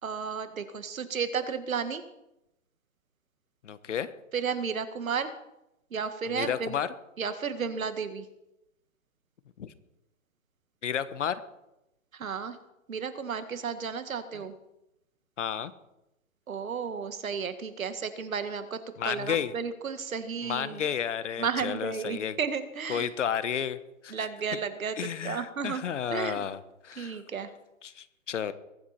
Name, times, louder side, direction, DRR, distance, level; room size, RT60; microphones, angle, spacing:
voice 1, 0.0-2.0 4.3-5.3 5.9-6.8 7.2-8.3 12.1-12.6 12.9-14.5 16.5-20.8 21.4-23.1 24.1-25.8 26.1-26.5 27.0-27.5, right 6 dB, 90° right, 10 dB, 1.9 m, -33 dB
voice 2, 3.6-4.1 6.3-6.9 9.6-9.7 10.8-11.4 14.3-14.4 15.4-15.7 19.0-19.5 20.4-22.4 22.9-24.1 25.0-27.2 27.8-28.5, left 8 dB, 60° left, 14 dB, 1.2 m, -32 dB
22.5 x 9.5 x 4.4 m, 0.90 s
hypercardioid pair, 170°, 40 cm